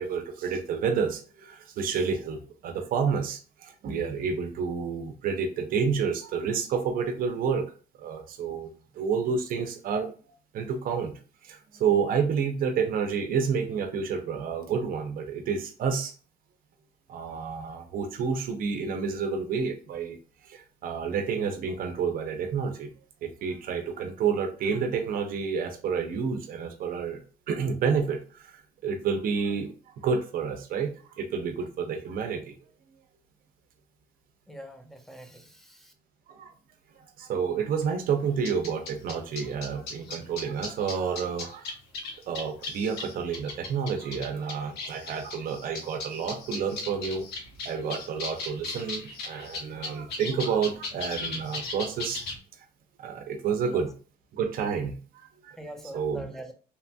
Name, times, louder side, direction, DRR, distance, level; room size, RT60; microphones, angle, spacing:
voice 1, 0.0-7.7 8.0-8.7 8.9-10.1 10.5-16.1 17.1-20.2 20.4-22.9 23.2-27.2 27.5-32.6 36.3-36.5 37.2-41.7 42.3-47.3 47.6-52.2 53.0-53.9 54.3-55.6 55.9-56.2, right 6 dB, 55° right, 0.6 m, -29 dB
voice 2, 34.5-35.9 53.6-53.9 55.5-56.5, right 1 dB, ahead, 0.5 m, -43 dB
sound 1, 38.4-52.4, left 3 dB, 80° left, 0.8 m, -37 dB
2.8 x 2.6 x 2.2 m
cardioid pair, 110°, 17 cm